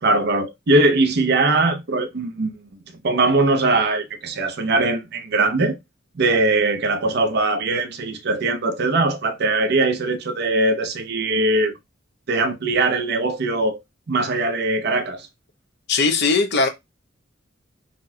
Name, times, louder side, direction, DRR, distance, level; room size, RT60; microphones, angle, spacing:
voice 1, 0.0-2.5 3.0-5.8 6.1-11.7 12.3-13.8 14.1-15.3, right 2 dB, 60° right, 0.6 m, -20 dB
voice 2, 15.9-16.7, left 4 dB, 60° left, 0.7 m, -19 dB
4.1 x 2.2 x 2.7 m
head